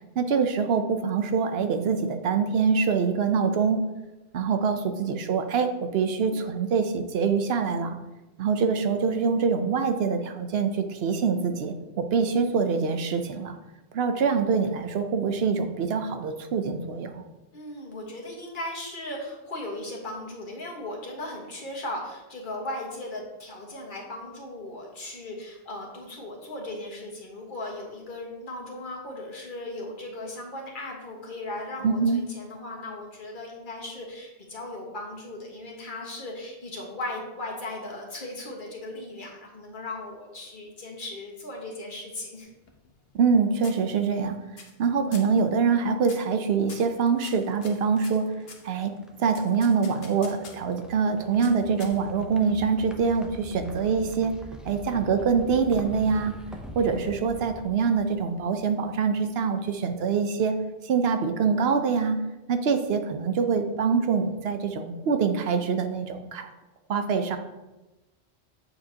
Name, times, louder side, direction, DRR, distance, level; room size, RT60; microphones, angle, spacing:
voice 1, 0.2-3.8 4.3-8.0 8.4-13.6 13.9-17.2 31.8-32.2 43.1-44.4 44.8-48.3 48.6-48.9 49.2-54.3 54.6-56.3 56.7-60.5 60.8-62.2 62.5-66.5 66.9-67.4, right 5 dB, 70° right, 8 dB, 0.8 m, -25 dB
voice 2, 4.6-5.1 17.5-42.5, left 1 dB, 50° left, -1 dB, 1.5 m, -37 dB
sound 1, 42.4-43.3 43.6-44.2 44.6-44.9 45.1-45.4 46.0-46.4 46.7-48.7 49.3-50.7 51.4-52.3, left 4 dB, 65° left, 1.1 m, -46 dB
sound 2, 47.0-59.1, right 1 dB, ahead, 0.4 m, -45 dB
6.9 x 6.7 x 2.8 m, 1.1 s
omnidirectional pair, 1.1 m